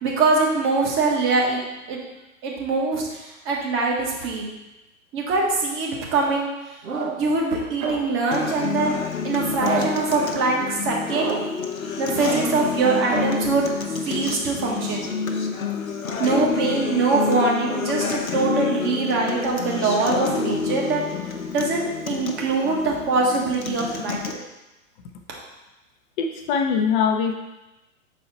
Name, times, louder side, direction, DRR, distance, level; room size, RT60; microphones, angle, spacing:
voice 1, 0.0-1.6 1.9-2.0 2.4-4.5 5.1-6.5 7.2-9.0 9.2-11.7 12.0-13.6 14.0-15.1 16.2-21.0 21.5-24.4 25.3-25.4, right 3 dB, 30° right, -2 dB, 1.5 m, -23 dB
sound 1, 6.8-7.4 7.8-8.3 9.6-10.1 11.1-11.6 12.1-12.7 13.1-13.4, right 4 dB, 80° right, 1.2 m, -28 dB
Acoustic guitar, 8.3-24.3, left 5 dB, 85° left, 0.9 m, -28 dB
voice 2, 26.2-27.3, left 6 dB, 35° left, 4 dB, 0.7 m, -22 dB
6.5 x 4.2 x 4.1 m, 1.0 s
hypercardioid pair, 115°, 41 cm